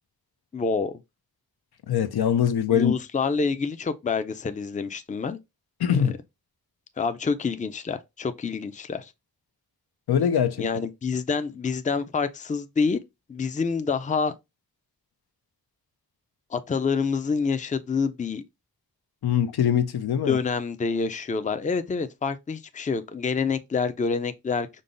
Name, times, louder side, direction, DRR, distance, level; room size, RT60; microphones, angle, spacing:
voice 1, 0.5-0.9 2.7-5.4 5.9-6.0 7.0-9.1 10.6-13.0 13.3-14.3 16.5-18.4 20.3-24.8, left 5 dB, 20° left, 0.4 m, -27 dB
voice 2, 1.9-2.9 5.8-6.1 10.1-10.7 19.2-20.4, left 8 dB, 80° left, 0.5 m, -22 dB
5.3 x 2.0 x 3.7 m
wide cardioid pair, 95°, 37 cm